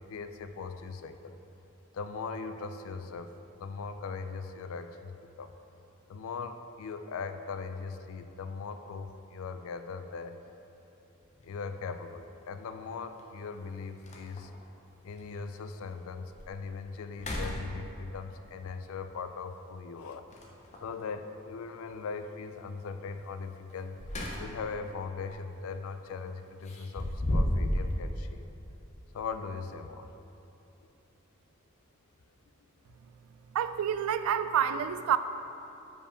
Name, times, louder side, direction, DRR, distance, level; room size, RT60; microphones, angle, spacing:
voice 1, 0.0-1.4 1.9-5.5 6.1-10.4 11.4-14.5 15.0-20.2 20.8-24.0 24.4-28.5 29.1-30.1, left 4 dB, 70° left, 9 dB, 0.4 m, -40 dB
sound 1, 11.3-11.4 13.2-13.3 13.7-13.8 14.0-14.6 15.2-15.3 15.8-15.9 16.3-16.7 17.1-18.2 20.3-20.9 23.7-24.8 25.1-25.4 26.6-28.0, left 1 dB, 35° left, 0.7 m, -33 dB
voice 2, 33.5-35.2, right 9 dB, 85° right, 13 dB, 0.3 m, -28 dB
5.1 x 4.9 x 4.9 m, 2.9 s
head